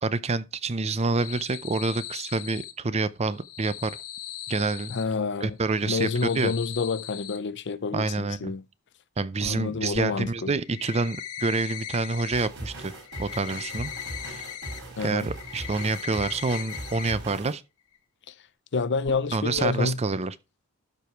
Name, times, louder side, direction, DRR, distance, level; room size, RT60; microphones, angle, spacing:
voice 1, 0.0-4.0 4.5-4.9 5.4-6.1 6.4-6.5 7.9-8.5 9.2-12.9 13.2-13.9 14.3-14.4 15.0-17.6 19.3-20.3, right 3 dB, 30° right, 0.5 m, -27 dB
sound 1, 1.0-2.7 3.3-5.0 5.6-7.4 9.4-9.5 9.9-10.0 10.5-12.5 12.8-14.8 15.1-17.1 17.4-17.5 17.9-18.0 19.0-19.2 19.5-19.6, left 10 dB, 75° left, 1.3 m, -39 dB
voice 2, 4.9-5.5 5.8-8.6 9.4-10.5 15.0-15.3 18.3-18.4 18.7-20.0, left 4 dB, 50° left, 0.6 m, -28 dB
sound 2, 12.3-17.5, right 1 dB, 55° right, 6.9 m, -40 dB
12.0 x 4.8 x 4.5 m
head